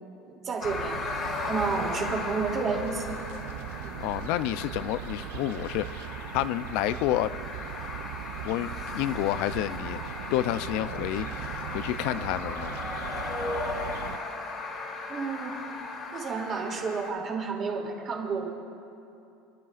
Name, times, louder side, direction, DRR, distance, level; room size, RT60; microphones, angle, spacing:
voice 1, 0.3-1.0 1.4-3.1 3.8-4.0 15.1-15.5 16.1-18.5, right 4 dB, 30° right, -1 dB, 2.8 m, -31 dB
sound 1, 0.6-17.1, left 3 dB, 30° left, 2.4 m, -37 dB
sound 2, 0.6-14.2, right 13 dB, 75° right, 0.5 m, -39 dB
voice 2, 4.0-6.1 6.3-7.3 8.4-12.8, left 13 dB, 60° left, 14 dB, 0.5 m, -30 dB
29.0 x 12.0 x 2.5 m, 2.7 s
supercardioid pair, 155°, 0 cm